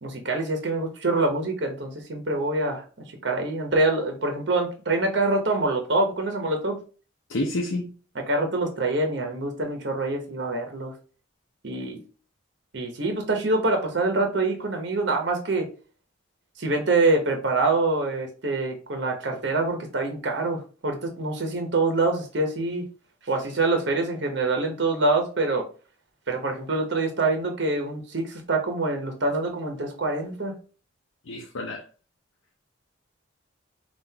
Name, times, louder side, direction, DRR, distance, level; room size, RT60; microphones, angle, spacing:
voice 1, 0.0-2.8 3.2-6.8 8.1-10.9 11.6-12.0 12.7-15.7 16.6-22.9 23.3-25.7 26.3-30.6, right 2 dB, 60° right, 0.9 m, -25 dB
voice 2, 7.3-7.9 31.3-31.8, left 1 dB, 80° left, 0.7 m, -29 dB
5.6 x 2.5 x 2.8 m
head